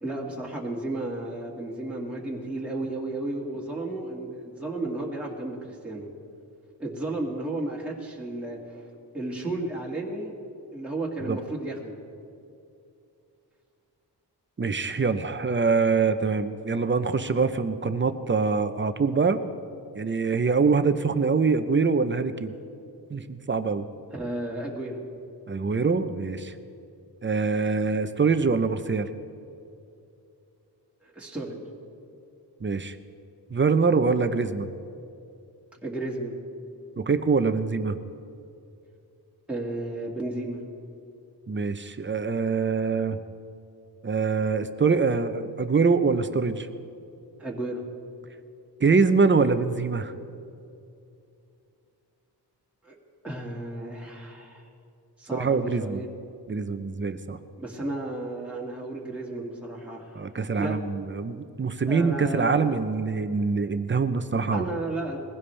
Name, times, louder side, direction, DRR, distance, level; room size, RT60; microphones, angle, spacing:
voice 1, 0.0-6.1 6.8-8.8 9.1-10.3 10.7-12.0 24.1-25.0 31.0-31.6 35.8-36.4 39.5-40.6 47.4-47.8 52.8-53.0 53.2-54.6 55.2-56.1 57.6-60.2 60.6-60.8 61.9-62.8 64.5-65.2, right 2 dB, 5° right, -4 dB, 2.0 m, -33 dB
voice 2, 14.6-19.4 19.9-22.5 23.1-23.9 25.5-26.5 27.2-29.1 32.6-33.0 33.5-34.7 37.0-38.0 41.5-43.2 44.0-46.7 48.8-50.1 55.3-56.0 56.5-57.4 60.1-64.7, right 4 dB, 30° right, 10 dB, 0.7 m, -24 dB
21.0 x 16.0 x 3.3 m, 2.6 s
wide cardioid pair, 100°, 42 cm